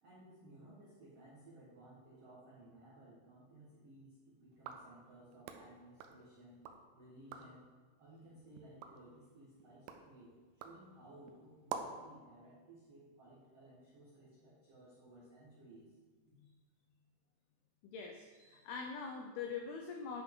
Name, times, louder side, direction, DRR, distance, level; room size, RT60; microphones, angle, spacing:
voice 1, 0.0-6.6 6.9-7.6 8.0-15.9, right 1 dB, 70° right, -8 dB, 1.4 m, -58 dB
sound 1, 4.5-6.8 7.2-7.6 8.1-12.1, right 6 dB, 90° right, 2.2 m, -50 dB
voice 2, 17.8-20.2, left 5 dB, 90° left, 2 dB, 2.2 m, -43 dB
10.0 x 5.9 x 3.7 m, 1.4 s
omnidirectional pair, 5.2 m